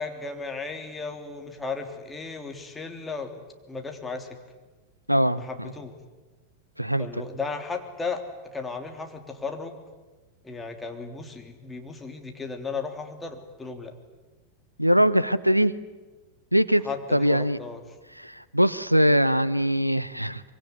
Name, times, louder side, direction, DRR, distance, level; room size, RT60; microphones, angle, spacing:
voice 1, 0.0-4.3 5.4-5.9 7.0-8.2 8.5-9.8 10.4-13.9 16.8-17.8, left 4 dB, 10° left, 4 dB, 3.2 m, -35 dB
voice 2, 5.1-5.4 6.8-7.2 14.8-15.7 16.5-17.6 18.2-20.4, equal, 90° right, 18 dB, 0.8 m, -22 dB
24.5 x 23.5 x 9.5 m, 1.2 s
figure-of-eight pair, 90°, 0 cm